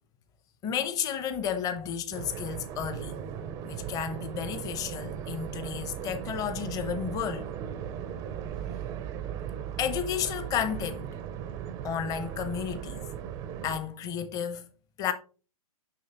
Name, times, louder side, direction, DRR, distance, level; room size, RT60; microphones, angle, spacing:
voice 1, 0.6-3.1 3.6-7.5 9.8-11.1 11.8-13.1 13.6-14.7 15.0-15.1, left 8 dB, 20° left, 0.7 m, -32 dB
sound 1, 2.1-13.8, right 9 dB, 15° right, 0.4 m, -37 dB
6.5 x 5.6 x 2.9 m
hypercardioid pair, 145°, 19 cm